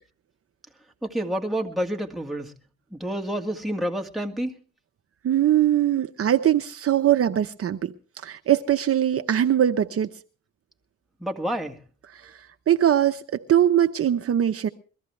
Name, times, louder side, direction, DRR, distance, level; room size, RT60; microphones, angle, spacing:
voice 1, 1.0-2.5 2.9-4.6 11.2-11.8, equal, ahead, 1.8 m, -29 dB
voice 2, 5.2-7.9 8.2-10.1 12.1-14.7, right 11 dB, 50° right, 0.8 m, -21 dB
22.0 x 14.0 x 3.3 m
cardioid pair, 90°, 30 cm